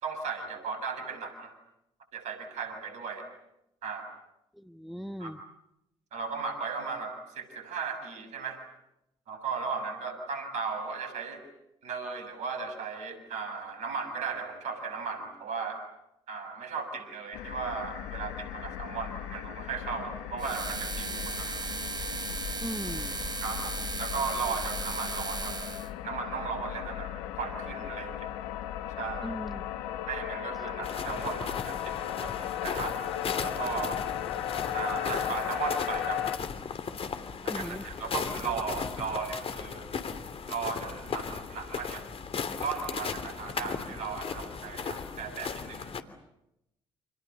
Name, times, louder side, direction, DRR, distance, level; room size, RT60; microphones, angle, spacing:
voice 1, 0.0-1.6 2.1-3.3 3.8-4.2 5.2-5.3 6.1-8.7 9.3-11.4 11.8-15.8 16.3-21.6 23.4-25.8 26.0-28.3 29.0-29.4 30.1-32.3 32.6-33.0 33.4-34.0 34.7-36.5 37.4-39.9 40.5-42.0 42.6-45.9, right 5 dB, 65° right, 9 dB, 7.1 m, -36 dB
voice 2, 4.5-5.4 22.6-23.2 29.2-29.6 37.5-37.8, equal, ahead, 10 dB, 1.5 m, -38 dB
sound 1, 17.3-36.4, left 11 dB, 80° left, 1.5 m, -36 dB
sound 2, 20.4-25.9, right 3 dB, 35° right, 4.1 m, -36 dB
sound 3, 30.8-46.0, left 6 dB, 50° left, 2.9 m, -37 dB
29.0 x 28.0 x 7.0 m, 0.84 s
hypercardioid pair, 50°, 13 cm